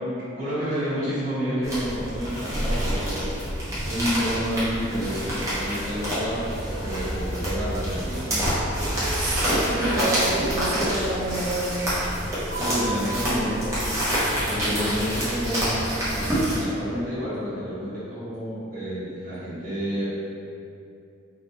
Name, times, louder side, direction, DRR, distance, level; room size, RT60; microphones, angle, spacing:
voice 1, 0.4-3.6 3.9-8.4 12.6-15.8 16.1-20.2, equal, 40° right, -13 dB, 1.2 m, -30 dB
sound 1, 1.6-16.6, equal, 15° right, 0.6 m, -27 dB
voice 2, 9.1-12.0, right 2 dB, 80° right, -3 dB, 0.5 m, -28 dB
sound 2, 12.5-19.5, equal, 65° right, 1.3 m, -42 dB
2.3 x 2.3 x 2.9 m, 2.6 s
head